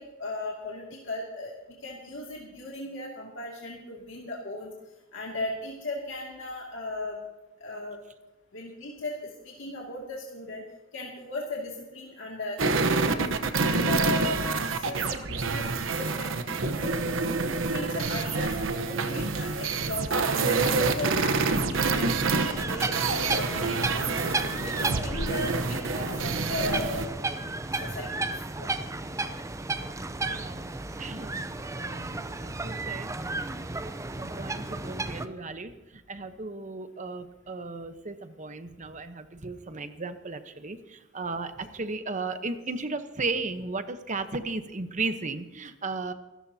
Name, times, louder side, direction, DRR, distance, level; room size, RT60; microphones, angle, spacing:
voice 1, 0.0-1.5 1.8-4.7 5.1-7.2 7.6-8.0 8.5-10.6 10.9-13.3 13.6-17.4 17.7-20.1 20.4-24.4 24.8-27.1 27.8-28.7 41.3-41.4, left 2 dB, 75° left, -2 dB, 2.4 m, -37 dB
sound 1, 12.6-27.1, right 4 dB, 80° right, 1.0 m, -27 dB
Bass guitar, 21.0-25.0, left 1 dB, 10° left, 3.7 m, -44 dB
sound 2, 22.5-35.3, right 2 dB, 15° right, 0.6 m, -33 dB
voice 2, 30.3-30.6 31.0-33.1 34.2-46.1, right 3 dB, 40° right, 9 dB, 1.0 m, -35 dB
26.5 x 13.0 x 2.8 m, 1.1 s
head